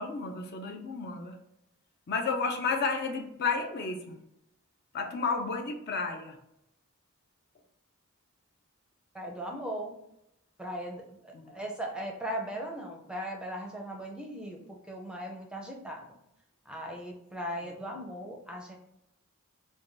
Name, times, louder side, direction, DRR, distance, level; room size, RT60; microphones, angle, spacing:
voice 1, 0.0-1.4 2.1-4.2 4.9-6.4 11.3-11.6 17.6-17.7, left 4 dB, 50° left, 4 dB, 0.5 m, -32 dB
voice 2, 9.1-9.9 10.6-11.2 11.5-16.1 16.7-18.8, equal, 5° right, 0 dB, 0.5 m, -38 dB
4.7 x 2.2 x 2.6 m, 0.82 s
head